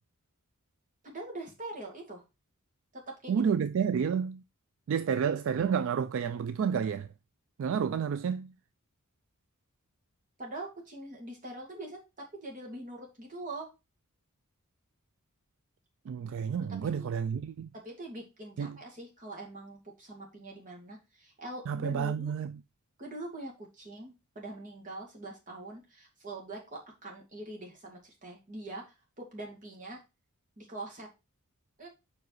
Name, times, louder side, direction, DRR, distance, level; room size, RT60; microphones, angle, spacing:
voice 1, 1.0-2.2 2.9-3.4 10.4-13.7 16.5-17.1 17.7-22.3 23.0-30.0 30.6-31.1 31.8-31.9, right 2 dB, 40° right, 2.2 m, -43 dB
voice 2, 3.3-4.4 4.9-7.1 7.6-8.5 16.1-17.7 18.6-18.8 21.7-22.6, right 7 dB, 60° right, 0.3 m, -30 dB
5.1 x 4.9 x 4.6 m
head